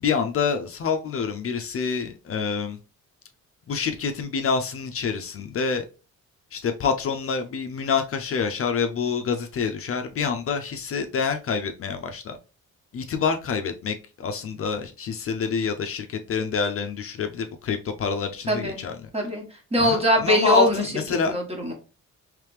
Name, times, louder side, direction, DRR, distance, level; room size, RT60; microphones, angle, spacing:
voice 1, 0.0-2.8 3.7-5.8 6.5-12.4 12.9-19.1 19.8-21.3, left 6 dB, 50° left, 0.6 m, -27 dB
voice 2, 18.5-18.8 19.1-20.8 21.3-21.7, equal, 20° right, 1.4 m, -22 dB
3.3 x 3.3 x 3.1 m
cardioid pair, 90°, 30 cm